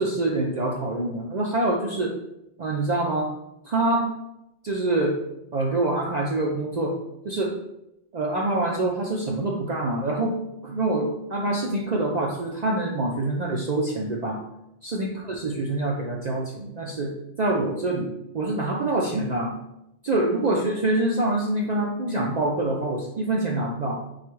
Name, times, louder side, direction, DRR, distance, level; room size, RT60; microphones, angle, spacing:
voice 1, 0.0-2.1 2.6-3.3 3.6-4.1 4.6-5.1 5.5-6.9 7.2-7.5 8.1-10.3 10.6-14.4 14.8-17.1 17.4-18.1 18.3-19.5 20.0-24.0, right 2 dB, 55° right, -2 dB, 0.4 m, -25 dB
3.6 x 2.4 x 4.5 m, 0.85 s
omnidirectional pair, 1.2 m